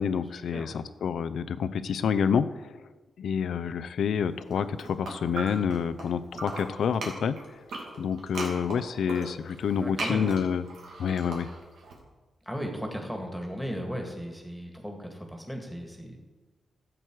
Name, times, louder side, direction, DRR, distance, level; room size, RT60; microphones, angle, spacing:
voice 1, 0.0-2.5 3.2-7.4 8.0-10.6 11.0-11.5, left 7 dB, 80° left, 13 dB, 0.5 m, -28 dB
sound 1, 4.4-6.1 6.3-11.9, right 2 dB, 85° right, 2.3 m, -38 dB
voice 2, 9.8-10.3 12.5-16.2, equal, ahead, 2 dB, 2.0 m, -36 dB
12.5 x 7.5 x 4.7 m, 1.3 s
cardioid pair, 105°, 0 cm